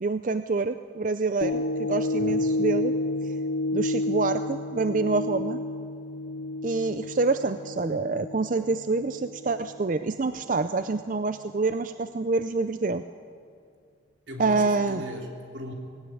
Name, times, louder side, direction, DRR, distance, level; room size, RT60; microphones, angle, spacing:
voice 1, 0.0-2.9 3.7-5.6 6.6-13.0 14.4-15.0, right 3 dB, 45° right, 11 dB, 0.5 m, -27 dB
sound 1, 1.4-9.8 10.3-10.4, left 2 dB, 75° left, 1.3 m, -30 dB
voice 2, 2.1-2.6 14.3-15.7, equal, 80° right, 1 dB, 3.4 m, -38 dB
19.0 x 17.0 x 9.7 m, 2.3 s
head